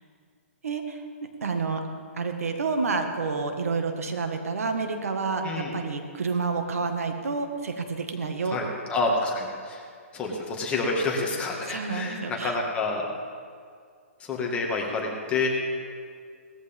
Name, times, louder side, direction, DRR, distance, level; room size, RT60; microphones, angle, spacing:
voice 1, 0.6-1.0 1.4-1.8 2.2-8.6 11.7-12.6, right 4 dB, 85° right, 5 dB, 1.8 m, -29 dB
voice 2, 8.5-9.8 10.1-13.0 14.3-15.5, left 3 dB, 15° left, -1 dB, 1.8 m, -28 dB
18.5 x 14.5 x 3.6 m, 2.2 s
hypercardioid pair, 155°, 8 cm